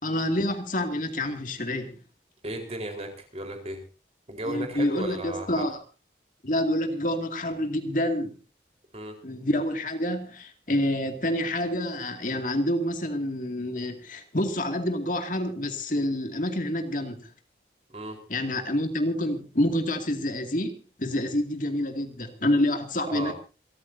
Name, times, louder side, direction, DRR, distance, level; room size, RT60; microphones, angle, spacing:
voice 1, 0.0-2.0 4.5-5.8 6.4-8.3 9.2-17.3 18.3-23.3, left 1 dB, 45° left, 2.3 m, -28 dB
voice 2, 2.4-3.8 4.3-5.6 8.9-9.1 17.9-18.2 23.1-23.3, right 1 dB, 35° right, 4.3 m, -35 dB
28.0 x 14.0 x 2.7 m
head